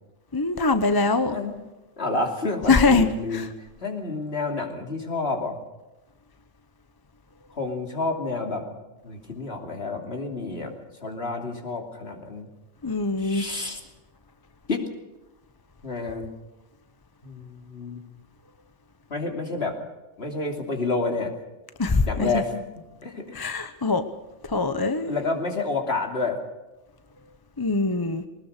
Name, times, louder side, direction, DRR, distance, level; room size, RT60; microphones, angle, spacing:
voice 1, 0.3-1.4 2.7-3.5 12.8-13.4 21.8-22.3 23.3-24.0 24.5-25.1 27.6-28.2, left 3 dB, 20° left, 10 dB, 0.8 m, -22 dB
voice 2, 2.0-5.6 7.5-8.6 9.0-10.7 11.0-12.5 13.2-13.8 14.7-14.8 15.8-16.3 17.2-18.0 19.1-19.8 20.2-21.3 22.0-22.6 23.0-23.6 25.1-26.4, left 3 dB, 55° left, 2 dB, 3.2 m, -29 dB
21.0 x 19.5 x 6.6 m, 1.1 s
omnidirectional pair, 1.3 m